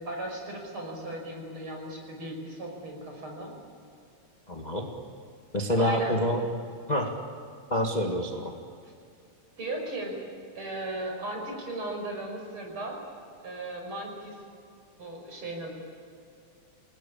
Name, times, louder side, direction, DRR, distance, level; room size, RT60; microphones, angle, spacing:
voice 1, 0.0-3.5 5.8-6.2 8.8-8.9 9.6-10.2 10.5-13.0 13.4-14.4 15.0-15.7, right 1 dB, 45° right, 1 dB, 6.2 m, -36 dB
voice 2, 4.5-4.9 5.5-6.4 6.9-7.2 7.7-8.5, equal, 20° left, 1 dB, 1.6 m, -27 dB
29.0 x 19.5 x 8.7 m, 2.4 s
omnidirectional pair, 3.3 m